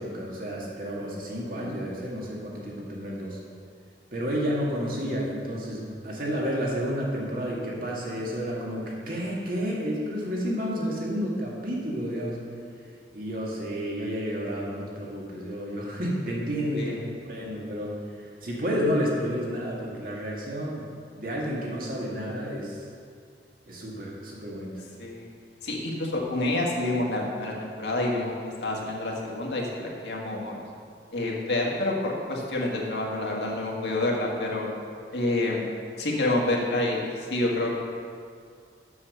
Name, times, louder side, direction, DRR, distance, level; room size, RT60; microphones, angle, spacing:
voice 1, 0.0-3.4 4.1-12.4 13.1-17.0 17.2-20.9 21.2-22.8 23.7-24.7, equal, 50° right, -4 dB, 2.1 m, -31 dB
voice 2, 25.6-28.3 28.6-30.6 31.1-34.7 35.1-35.7 36.0-37.9, left 2 dB, 75° left, -2 dB, 1.7 m, -28 dB
7.4 x 7.1 x 6.6 m, 2.2 s
head